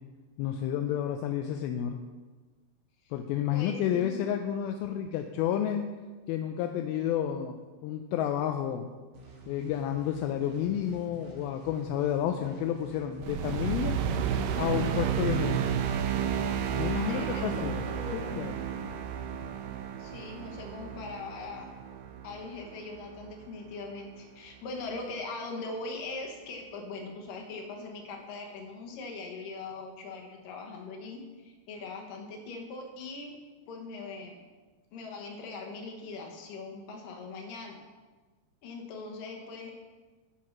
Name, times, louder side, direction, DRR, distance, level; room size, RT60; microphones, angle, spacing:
voice 1, 0.4-2.0 3.1-5.8 6.3-7.6 7.8-8.9 9.5-14.0 14.6-15.7 16.7-17.8 18.1-18.5, left 10 dB, 80° left, 5 dB, 2.2 m, -30 dB
voice 2, 3.5-4.2 16.9-18.9 20.0-21.7 22.2-33.4 33.7-34.5 34.9-37.8 38.6-39.8, left 3 dB, 65° left, 1 dB, 2.6 m, -41 dB
sound 1, 9.1-16.9, right 2 dB, 50° right, 1.5 m, -49 dB
sound 2, 13.2-23.7, right 8 dB, 80° right, 2.1 m, -32 dB
12.0 x 4.7 x 5.9 m, 1.3 s
omnidirectional pair, 4.6 m